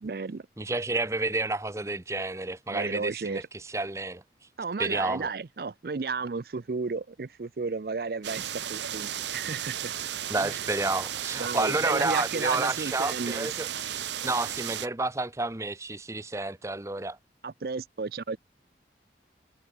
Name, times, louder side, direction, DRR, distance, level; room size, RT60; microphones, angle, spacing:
voice 1, 0.0-0.5 2.7-3.4 4.6-9.9 10.4-10.6 11.4-13.5 17.4-18.4, right 4 dB, 55° right, 0.5 m, -33 dB
voice 2, 0.6-4.2 4.8-5.3 10.3-17.2, right 2 dB, 15° right, 0.8 m, -30 dB
sound 1, 8.2-14.9, right 10 dB, 85° right, 1.0 m, -34 dB
head